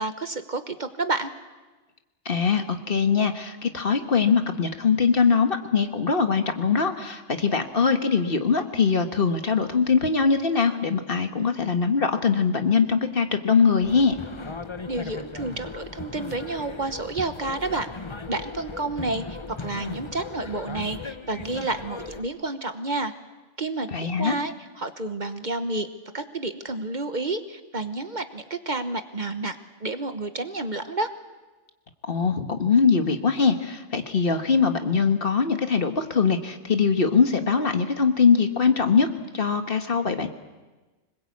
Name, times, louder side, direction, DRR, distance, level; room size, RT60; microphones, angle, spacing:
voice 1, 0.0-1.3 14.9-17.9 18.3-23.1 23.6-25.9 26.1-29.6 29.8-31.1, right 2 dB, 40° right, 9 dB, 1.2 m, -30 dB
voice 2, 2.2-14.2 23.9-24.4 32.1-39.1 39.3-40.3, left 5 dB, 50° left, 7 dB, 1.6 m, -22 dB
sound 1, 13.8-22.2, left 4 dB, 25° left, 0.9 m, -37 dB
25.0 x 21.0 x 8.5 m, 1.2 s
omnidirectional pair, 1.2 m